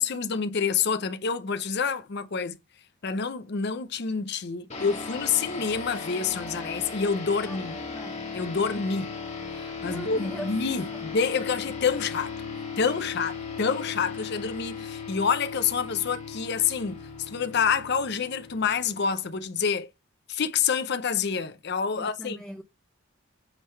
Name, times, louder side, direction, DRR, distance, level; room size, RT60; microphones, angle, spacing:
voice 1, 0.0-2.6 3.0-7.8 8.3-9.1 9.5-12.3 12.8-19.9 20.3-22.4, left 6 dB, 55° left, 0.6 m, -27 dB
sound 1, 4.7-19.5, left 5 dB, 35° left, 1.8 m, -37 dB
voice 2, 7.4-8.3 9.8-11.0 21.9-22.6, equal, 5° left, 0.6 m, -41 dB
7.8 x 3.8 x 4.4 m
head